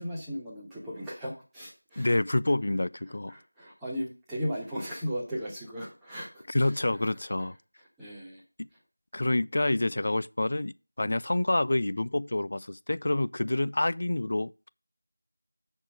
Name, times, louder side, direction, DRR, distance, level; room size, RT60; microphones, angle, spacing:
voice 1, 0.0-2.1 2.7-7.5 8.0-8.4, equal, 5° right, 1.3 m, -37 dB
voice 2, 2.0-3.3 6.5-7.6 8.6-8.7 9.1-14.7, left 2 dB, 45° left, 0.3 m, -28 dB
7.7 x 4.5 x 6.4 m
figure-of-eight pair, 175°, 0 cm